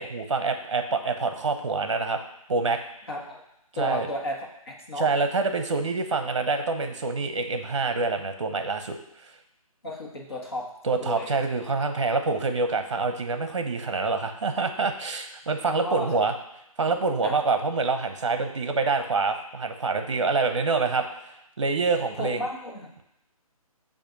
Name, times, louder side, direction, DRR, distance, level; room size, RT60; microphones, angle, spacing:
voice 1, 0.0-2.2 2.5-2.8 3.7-4.1 5.0-9.0 10.8-16.3 16.8-21.1 21.6-22.5, right 4 dB, 50° right, 7 dB, 0.7 m, -26 dB
voice 2, 3.1-3.4 3.8-5.1 9.8-10.7 11.0-11.4 15.6-16.3 17.2-17.4 22.2-22.9, left 1 dB, 40° left, -2 dB, 1.3 m, -33 dB
7.2 x 2.6 x 5.2 m, 0.82 s
hypercardioid pair, 180°, 19 cm